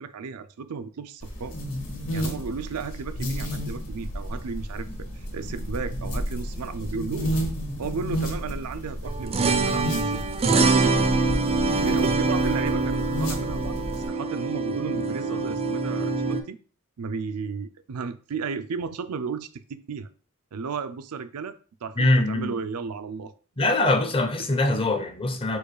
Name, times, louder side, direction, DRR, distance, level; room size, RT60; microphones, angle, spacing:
voice 1, 0.0-1.6 2.1-4.9 5.3-7.4 7.8-11.1 11.8-16.6 17.0-20.1 20.5-23.3 24.4-24.5, right 5 dB, 85° right, 0.5 m, -34 dB
sound 1, 1.2-14.1, equal, 60° left, 1.7 m, -32 dB
sound 2, 9.1-16.4, right 3 dB, 25° right, 0.4 m, -24 dB
voice 2, 22.0-22.5 23.6-25.6, left 2 dB, 25° left, 0.6 m, -23 dB
4.7 x 2.4 x 4.7 m
head